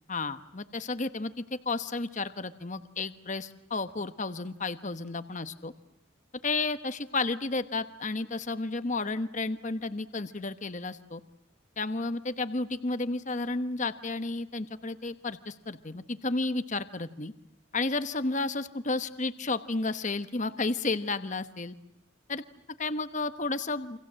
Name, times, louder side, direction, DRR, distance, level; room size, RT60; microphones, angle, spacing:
voice 1, 0.1-5.7 6.4-11.2 11.8-17.3 17.7-21.7 22.3-22.4 22.8-24.0, left 3 dB, 35° left, 11 dB, 1.1 m, -32 dB
29.0 x 25.5 x 7.6 m, 0.79 s
head